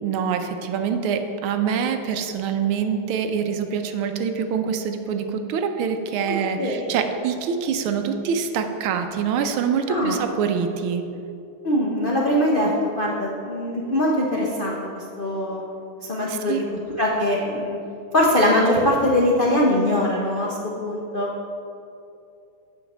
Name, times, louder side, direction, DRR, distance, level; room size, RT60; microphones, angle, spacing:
voice 1, 0.0-11.0 16.3-16.6, right 6 dB, 80° right, 7 dB, 1.5 m, -25 dB
voice 2, 6.6-6.9 9.9-10.2 11.6-12.7 13.0-15.6 16.0-16.6 17.0-17.8 18.1-21.3, left 1 dB, 55° left, -4 dB, 0.5 m, -22 dB
7.1 x 5.8 x 7.1 m, 2.6 s
omnidirectional pair, 2.3 m